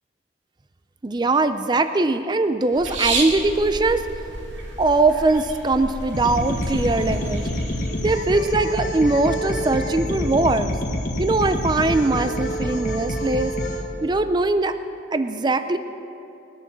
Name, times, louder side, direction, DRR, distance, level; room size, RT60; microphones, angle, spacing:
voice 1, 1.0-4.0 4.8-7.4 8.0-10.7 11.2-13.5 14.0-14.8 15.1-15.8, right 2 dB, 25° right, 10 dB, 0.4 m, -21 dB
sound 1, 2.7-8.6, right 2 dB, 85° right, 2.1 m, -32 dB
sound 2, 6.1-13.8, equal, 45° left, 1.6 m, -27 dB
20.5 x 7.0 x 7.3 m, 2.8 s
head